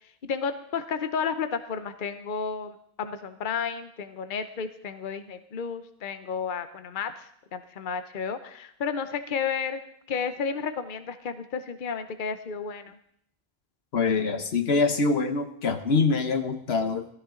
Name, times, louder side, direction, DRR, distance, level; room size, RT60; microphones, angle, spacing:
voice 1, 0.2-7.3 7.5-9.8 10.1-13.0, left 6 dB, 55° left, 10 dB, 1.0 m, -32 dB
voice 2, 13.9-17.1, left 4 dB, 80° left, 8 dB, 1.3 m, -24 dB
16.5 x 13.5 x 3.8 m, 0.68 s
omnidirectional pair, 1.0 m